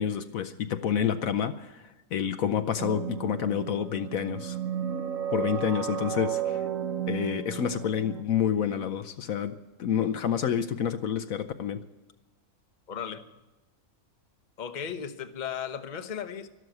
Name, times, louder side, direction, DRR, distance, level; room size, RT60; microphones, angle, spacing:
voice 1, 0.0-4.6 5.3-6.7 7.1-11.8, left 8 dB, 65° left, 10 dB, 1.1 m, -29 dB
sound 1, 2.8-8.2, right 9 dB, 60° right, 1.5 m, -33 dB
voice 2, 12.9-13.2 14.6-16.5, left 8 dB, 35° left, 8 dB, 1.0 m, -35 dB
12.5 x 12.5 x 7.9 m, 1.1 s
omnidirectional pair, 1.6 m